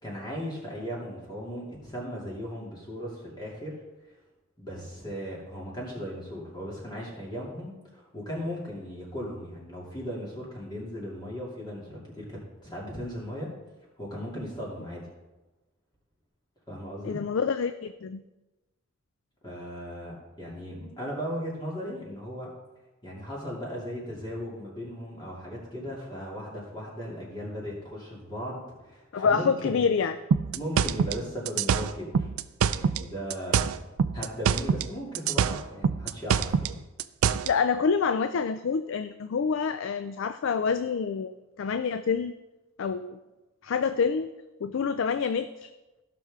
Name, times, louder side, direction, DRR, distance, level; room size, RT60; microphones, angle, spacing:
voice 1, 0.0-3.7 4.6-13.5 14.0-15.0 16.7-17.2 19.4-22.5 23.0-29.8 30.5-32.3 32.7-33.7 34.1-36.7, equal, 20° left, -4 dB, 2.6 m, -37 dB
voice 2, 17.0-18.2 29.1-30.1 37.5-42.3 42.8-43.2 43.6-44.3 44.6-45.7, left 5 dB, 65° left, 11 dB, 0.4 m, -27 dB
sound 1, 30.3-33.0 33.3-34.9 35.1-37.5, right 7 dB, 85° right, 0.4 m, -25 dB
15.5 x 5.9 x 3.6 m, 1.1 s
head